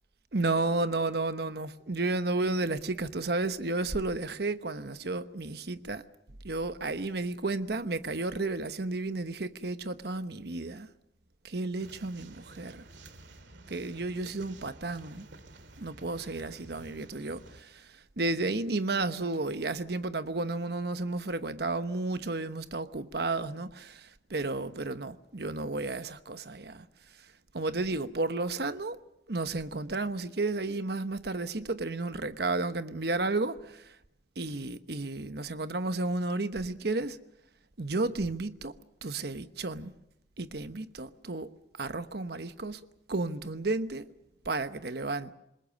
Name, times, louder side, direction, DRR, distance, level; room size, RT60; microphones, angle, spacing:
voice 1, 0.3-6.0 6.4-10.9 11.4-12.8 13.7-15.3 15.8-26.9 27.5-29.0 29.3-34.0 34.4-37.2 37.8-38.7 39.0-39.9 40.4-41.5 41.8-42.8 43.1-44.1 44.4-45.3, right 2 dB, 60° right, 1.1 m, -32 dB
sound 1, 11.8-17.6, right 2 dB, 80° right, 2.1 m, -52 dB
27.0 x 21.5 x 6.5 m
head